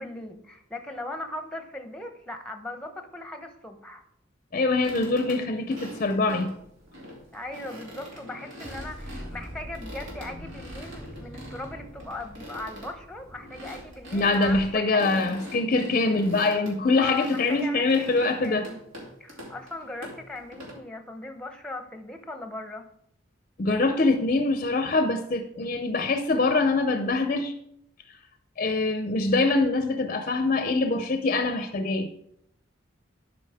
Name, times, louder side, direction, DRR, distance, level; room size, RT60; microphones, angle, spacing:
voice 1, 0.0-4.0 7.3-15.4 17.0-18.8 19.2-22.8, left 2 dB, 5° left, 6 dB, 0.8 m, -38 dB
voice 2, 4.5-6.5 14.1-18.7 23.6-27.5 28.6-32.1, left 3 dB, 45° left, 7 dB, 0.5 m, -24 dB
sound 1, 4.8-20.7, equal, 90° right, 2.6 m, -44 dB
sound 2, 6.6-7.2 8.6-14.7, equal, 30° right, 3.2 m, -43 dB
11.5 x 5.1 x 3.5 m, 0.74 s
head